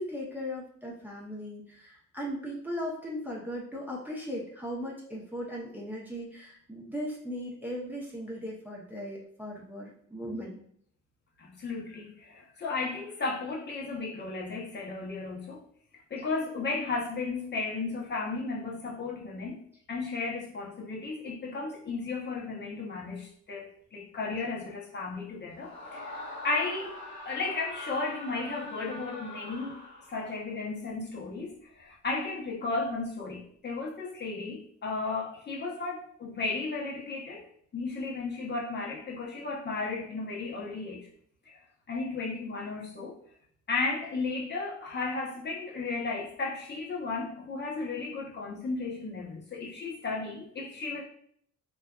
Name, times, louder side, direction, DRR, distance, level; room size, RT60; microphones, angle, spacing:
voice 1, 0.0-10.6, equal, 5° right, -5 dB, 0.6 m, -38 dB
voice 2, 11.4-15.6 16.1-19.6 19.9-27.0 27.2-29.8 30.1-37.4 37.7-41.1 41.5-41.6 41.9-43.1 43.7-51.0, left 3 dB, 35° left, -3 dB, 0.7 m, -34 dB
Screaming, 25.5-30.4, left 1 dB, 65° left, 0.9 m, -43 dB
2.5 x 2.2 x 2.2 m, 0.65 s
cardioid pair, 90°, 30 cm